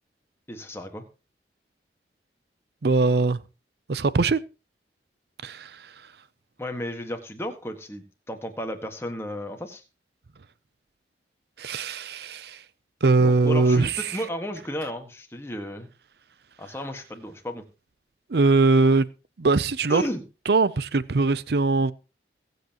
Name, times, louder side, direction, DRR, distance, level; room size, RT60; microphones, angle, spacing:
voice 1, 0.5-1.0 6.6-9.8 13.2-15.9 16.6-17.6 19.9-20.2, equal, 15° left, 1.6 m, -33 dB
voice 2, 2.8-3.4 3.9-4.4 5.4-5.7 11.6-12.6 13.0-14.2 18.3-19.1 19.4-20.0 20.5-21.9, right 3 dB, 65° right, 0.6 m, -21 dB
22.5 x 7.9 x 3.0 m
head